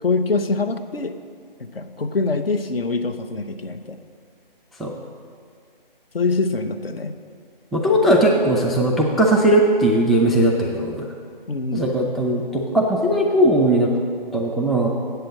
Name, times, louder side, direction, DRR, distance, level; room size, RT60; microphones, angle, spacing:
voice 1, 0.0-1.1 1.6-4.0 6.1-7.1 11.5-11.9, left 3 dB, 80° left, 8 dB, 0.9 m, -24 dB
voice 2, 7.7-11.1 11.7-13.9 14.3-14.9, right 1 dB, ahead, -2 dB, 0.3 m, -18 dB
8.0 x 6.8 x 7.2 m, 2.1 s
figure-of-eight pair, 165°, 29 cm